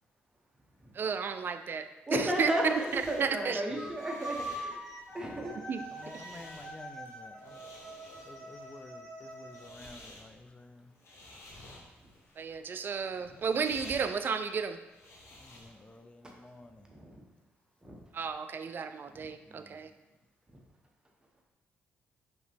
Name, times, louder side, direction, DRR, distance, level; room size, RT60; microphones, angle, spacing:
voice 1, 1.0-1.9 2.4-3.6 5.7-5.8 12.4-14.8 18.1-19.9, right 6 dB, 50° right, 9 dB, 0.4 m, -32 dB
voice 2, 2.1-4.8 5.1-5.6 13.3-13.4 16.9-17.2 17.8-18.0 19.1-19.3 20.5-20.6, right 1 dB, 15° right, -1 dB, 1.1 m, -34 dB
sound 1, 2.5-16.0, left 1 dB, 70° left, 1.1 m, -54 dB
sound 2, 3.8-9.7, right 1 dB, 5° left, 1.5 m, -44 dB
voice 3, 5.2-5.5 5.9-7.6 8.2-10.9 15.4-16.9 19.5-19.9, left 2 dB, 25° left, 8 dB, 0.4 m, -51 dB
5.1 x 3.0 x 3.4 m, 1.0 s
cardioid pair, 75°, 5 cm